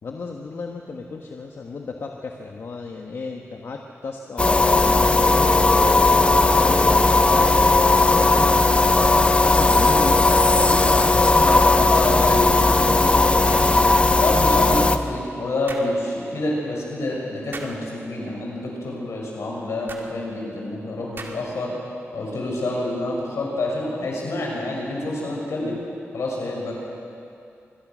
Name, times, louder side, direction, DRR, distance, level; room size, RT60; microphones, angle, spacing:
voice 1, 0.0-6.0 6.5-9.0 9.3-11.9 12.8-13.7 16.2-16.3 25.5-25.8, left 4 dB, 65° left, 1 dB, 1.5 m, -34 dB
sound 1, 4.4-15.0, left 2 dB, 25° left, 0.9 m, -17 dB
voice 2, 11.8-12.8 14.2-21.7 22.1-25.8 26.1-26.7, left 2 dB, 85° left, -2 dB, 7.0 m, -27 dB
sound 2, 13.5-13.8 15.7-15.9 17.5-17.8 19.9-20.1 21.2-21.6, right 3 dB, 50° right, 2.4 m, -37 dB
25.5 x 21.5 x 6.4 m, 2.6 s
wide cardioid pair, 130°, 5 cm